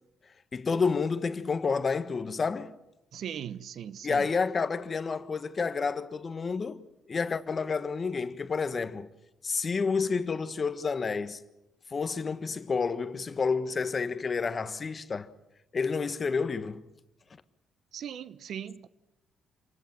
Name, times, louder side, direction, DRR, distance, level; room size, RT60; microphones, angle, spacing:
voice 1, 0.5-2.7 4.0-6.8 7.1-9.1 9.4-11.4 11.9-15.3 15.7-16.8, left 5 dB, 35° left, 1.5 m, -29 dB
voice 2, 3.1-4.3 17.9-18.9, right 9 dB, 65° right, 1.2 m, -39 dB
27.5 x 20.0 x 7.4 m
cardioid pair, 90°, 0 cm